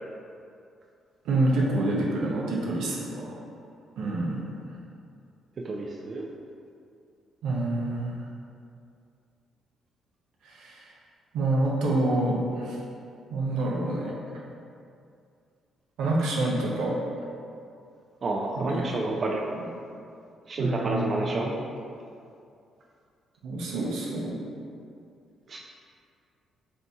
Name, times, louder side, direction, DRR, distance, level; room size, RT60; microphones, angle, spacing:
voice 1, 1.2-3.4 4.0-4.4 7.4-8.1 10.4-10.9 11.3-12.8 13.3-14.1 16.0-16.9 18.6-18.8 20.6-21.1 23.4-24.4, right 2 dB, 90° right, -3 dB, 0.7 m, -27 dB
voice 2, 5.6-6.3 18.2-19.5 20.5-21.5 25.5-25.6, right 2 dB, 45° right, -1 dB, 0.3 m, -29 dB
4.0 x 2.7 x 3.5 m, 2.4 s
cardioid pair, 90°, 0 cm